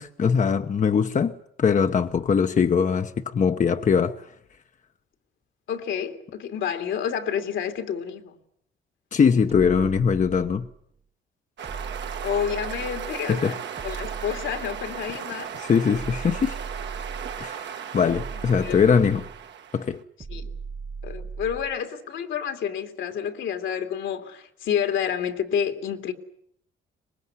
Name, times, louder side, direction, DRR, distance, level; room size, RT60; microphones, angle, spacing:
voice 1, 0.0-4.3 9.1-10.7 13.3-13.5 15.6-16.6 17.4-19.2 19.7-20.0, left 6 dB, 40° left, 0.9 m, -22 dB
voice 2, 5.7-8.4 12.2-13.6 13.8-15.5 18.3-18.8 20.3-20.5 21.0-26.1, left 8 dB, 75° left, 2.6 m, -29 dB
sound 1, 9.5-10.8 11.6-13.3 13.8-15.2 15.9-17.5 18.1-19.5 20.2-21.8, right 5 dB, 30° right, 1.2 m, -38 dB
sound 2, 11.6-20.0, right 8 dB, 65° right, 1.4 m, -36 dB
24.0 x 20.5 x 9.6 m
cardioid pair, 90°, 20 cm